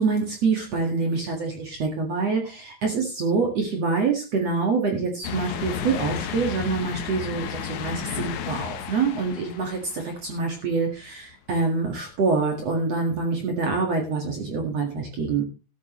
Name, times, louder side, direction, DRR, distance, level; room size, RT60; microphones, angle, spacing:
voice 1, 0.0-15.4, right 4 dB, 50° right, 2 dB, 2.6 m, -26 dB
sound 1, 5.2-10.8 11.3-11.4 12.7-12.8, left 9 dB, 65° left, 2.1 m, -33 dB
13.5 x 12.5 x 3.1 m, 0.31 s
omnidirectional pair, 4.5 m